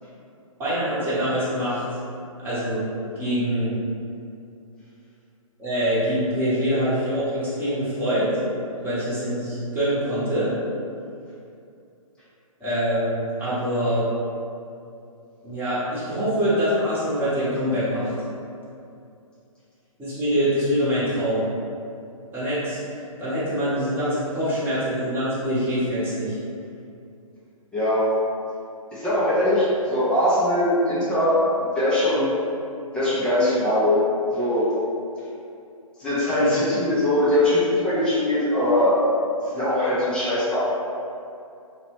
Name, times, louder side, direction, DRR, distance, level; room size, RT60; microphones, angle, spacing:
voice 1, 0.6-1.8 2.4-2.8 3.2-3.7 5.6-8.3 8.8-10.5 12.6-14.0 15.4-18.1 20.0-21.4 22.3-22.8 23.2-26.4 36.3-36.6, equal, 10° right, -11 dB, 0.8 m, -24 dB
voice 2, 27.7-28.1 28.9-31.4 31.8-32.3 32.9-34.0 34.3-34.7 36.0-39.0 39.5-40.6, left 1 dB, 5° left, -11 dB, 0.3 m, -21 dB
2.8 x 2.1 x 2.9 m, 2.5 s
figure-of-eight pair, 130°, 18 cm